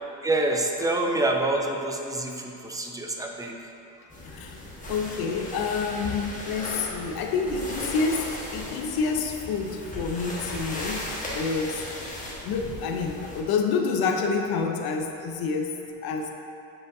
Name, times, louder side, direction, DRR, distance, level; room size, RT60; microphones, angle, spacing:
voice 1, 0.2-3.5, right 2 dB, 10° right, 1 dB, 0.4 m, -26 dB
sound 1, 4.1-13.4, left 1 dB, 20° left, 1.3 m, -36 dB
voice 2, 4.2-4.6 4.9-11.8 12.4-16.3, left 5 dB, 60° left, 3 dB, 0.7 m, -28 dB
8.4 x 5.1 x 2.7 m, 2.8 s
cardioid pair, 125°, 41 cm